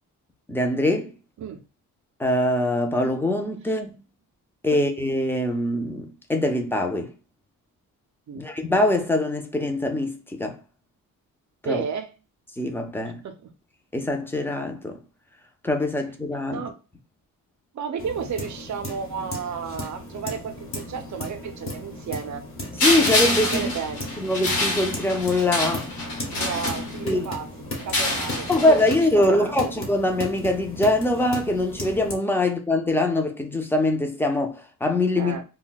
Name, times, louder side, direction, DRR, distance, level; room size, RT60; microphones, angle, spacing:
voice 1, 0.5-1.1 2.2-3.9 4.6-7.1 8.4-10.5 11.6-11.8 12.6-13.2 13.9-15.0 15.6-16.6 22.8-23.7 24.2-25.9 27.0-27.3 28.5-35.4, left 1 dB, 5° left, 0.5 m, -23 dB
voice 2, 11.6-12.1 13.2-13.5 16.5-16.8 17.7-22.5 23.5-24.1 26.3-27.5 27.8-29.7 35.2-35.4, right 6 dB, 55° right, 0.6 m, -33 dB
sound 1, 18.0-32.2, left 1 dB, 40° left, 1.0 m, -36 dB
sound 2, 22.8-27.3 27.8-29.1, left 2 dB, 85° left, 1.0 m, -26 dB
2.2 x 2.1 x 3.9 m
cardioid pair, 90°, 35 cm